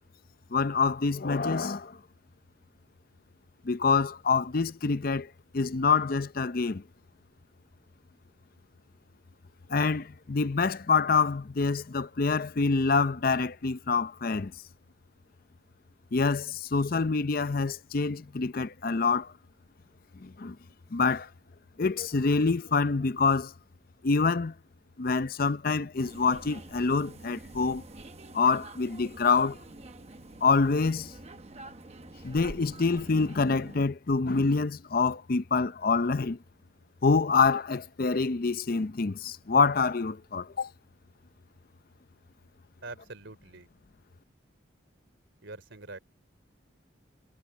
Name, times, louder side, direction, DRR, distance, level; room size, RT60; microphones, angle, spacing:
voice 1, 0.5-2.0 3.6-6.8 9.7-14.5 16.1-19.3 20.2-20.6 20.9-21.3 21.8-23.5 24.0-24.5 25.0-27.8 28.3-29.6 30.4-31.1 32.2-36.4 37.0-40.7, left 4 dB, 45° left, 0.6 m, -26 dB
sound 1, 26.0-33.8, right 2 dB, 30° right, 0.9 m, -47 dB
voice 2, 42.8-43.7 45.4-46.0, right 3 dB, 65° right, 3.4 m, -44 dB
head